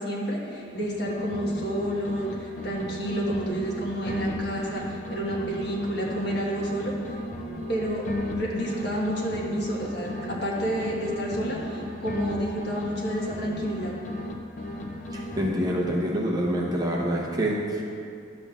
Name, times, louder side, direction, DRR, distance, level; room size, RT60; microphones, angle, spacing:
voice 1, 0.0-7.2 7.7-13.9, right 1 dB, 55° left, -4 dB, 1.5 m, -30 dB
sound 1, 0.7-2.3 2.6-6.3 6.6-10.3 10.6-14.3 14.6-16.0, left 1 dB, 40° left, 0.7 m, -35 dB
voice 2, 15.1-17.8, equal, 20° right, -3 dB, 0.8 m, -26 dB
12.0 x 7.6 x 2.5 m, 2.5 s
head